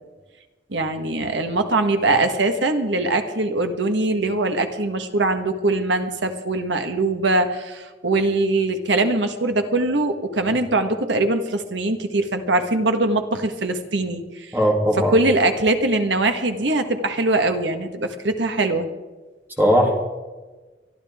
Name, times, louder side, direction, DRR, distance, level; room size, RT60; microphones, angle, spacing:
voice 1, 0.7-14.5 15.0-18.9, right 2 dB, 85° right, 7 dB, 1.5 m, -22 dB
voice 2, 14.5-15.2 19.6-19.9, equal, 10° right, -2 dB, 2.8 m, -18 dB
24.5 x 12.5 x 3.6 m, 1.2 s
head